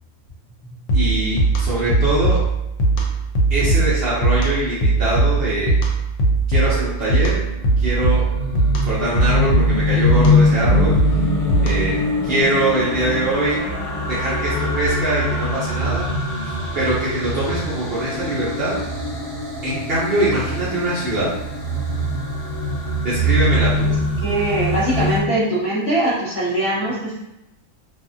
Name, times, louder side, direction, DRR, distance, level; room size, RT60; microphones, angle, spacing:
sound 1, 0.9-12.0, right 3 dB, 70° left, 0.9 m, -20 dB
voice 1, 0.9-2.4 3.5-5.8 6.5-7.4 7.8-8.2 8.8-11.2 11.6-12.0 12.2-13.6 14.1-16.1 16.7-18.7 19.6-21.3 23.0-23.9, right 1 dB, 55° right, -8 dB, 0.8 m, -22 dB
sound 2, 7.4-25.2, left 2 dB, 15° right, 1.0 m, -23 dB
voice 2, 24.2-27.1, right 1 dB, 30° left, -10 dB, 0.9 m, -21 dB
2.5 x 2.4 x 2.5 m, 0.89 s
omnidirectional pair, 1.4 m